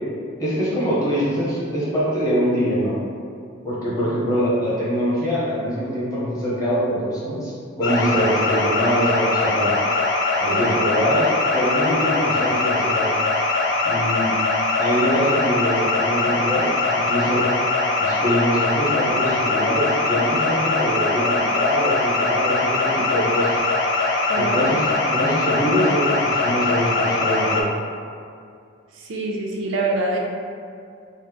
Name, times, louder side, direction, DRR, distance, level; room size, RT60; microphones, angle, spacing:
voice 1, 0.4-2.9 3.6-7.5 7.8-9.7 10.4-13.1 13.8-14.3 14.8-17.4 18.0-23.6 24.4-24.8 25.1-27.6, equal, 15° left, -9 dB, 0.8 m, -23 dB
sound 1, 7.8-27.6, left 3 dB, 65° left, 0.3 m, -22 dB
voice 2, 10.5-10.8 24.3-24.8 28.9-30.2, right 2 dB, 80° right, -1 dB, 0.4 m, -25 dB
3.0 x 2.0 x 3.4 m, 2.3 s
head